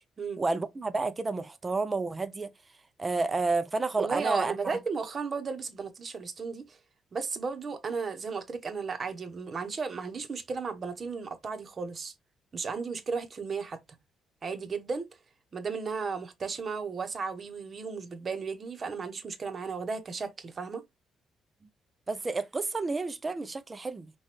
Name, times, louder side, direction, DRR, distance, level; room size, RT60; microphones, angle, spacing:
voice 1, 0.4-2.5 3.0-4.8 22.1-24.1, right 3 dB, 25° right, 0.6 m, -30 dB
voice 2, 4.0-6.8 7.1-12.1 12.5-13.8 14.4-15.1 15.5-20.8, right 5 dB, 40° right, 1.0 m, -34 dB
5.8 x 2.6 x 3.1 m
cardioid pair, 90°, 0 cm